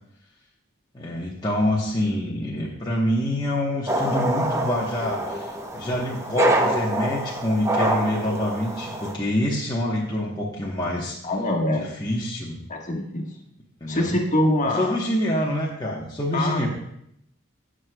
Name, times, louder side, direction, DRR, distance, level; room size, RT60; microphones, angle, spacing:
voice 1, 0.9-11.2 11.7-12.6 13.8-14.2 14.7-16.7, left 1 dB, 20° left, -5 dB, 1.0 m, -26 dB
sound 1, 3.9-9.1, right 1 dB, 15° right, 0.8 m, -25 dB
voice 2, 11.2-11.8 12.7-13.3 13.9-15.0 16.3-16.6, left 1 dB, 40° left, 1 dB, 1.4 m, -24 dB
17.5 x 6.3 x 2.2 m, 0.76 s
head